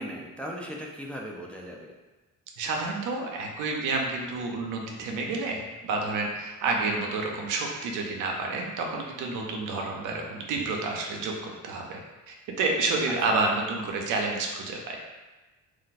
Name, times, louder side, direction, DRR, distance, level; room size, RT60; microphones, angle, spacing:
voice 1, 0.0-1.9 13.1-13.4, equal, 5° left, -2 dB, 0.4 m, -38 dB
voice 2, 2.6-12.0 12.3-15.0, right 3 dB, 85° right, 1 dB, 0.6 m, -29 dB
2.5 x 2.2 x 4.0 m, 1.1 s
cardioid pair, 90°, 30 cm